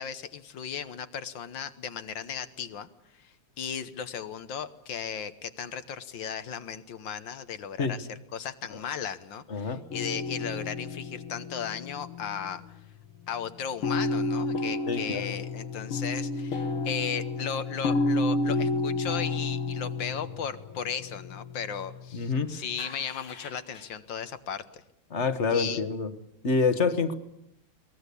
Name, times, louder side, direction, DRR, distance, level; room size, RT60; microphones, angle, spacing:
voice 1, 0.0-2.9 3.1-12.6 13.3-24.8 25.5-25.8, left 7 dB, 65° left, 12 dB, 1.7 m, -36 dB
voice 2, 9.5-9.8 14.9-15.4 22.1-22.5 25.1-26.1 26.4-27.1, left 4 dB, 35° left, 10 dB, 1.5 m, -27 dB
sound 1, 9.9-12.8 13.1-13.3 13.8-22.3 22.8-23.8, left 2 dB, 85° left, 2.8 m, -31 dB
23.0 x 19.5 x 8.4 m, 0.78 s
omnidirectional pair, 2.3 m